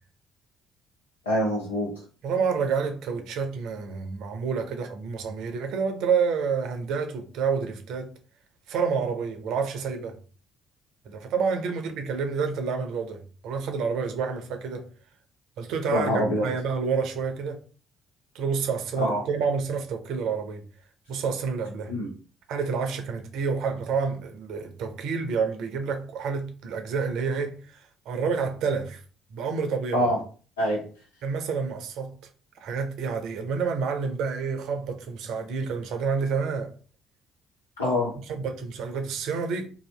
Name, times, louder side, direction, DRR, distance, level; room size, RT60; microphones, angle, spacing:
voice 1, 1.3-1.9 15.9-16.5 18.9-19.2 21.9-22.1 29.9-30.2 30.6-30.8 37.8-38.2, equal, 85° left, 0.9 m, -25 dB
voice 2, 2.2-8.1 8.7-10.2 11.0-14.9 15.6-17.6 18.3-20.6 21.1-21.9 22.5-29.0 29.3-30.1 31.2-32.2 32.6-36.7 38.3-39.7, right 5 dB, 65° right, 0.6 m, -29 dB
2.7 x 2.4 x 3.2 m
figure-of-eight pair, 50°, 0 cm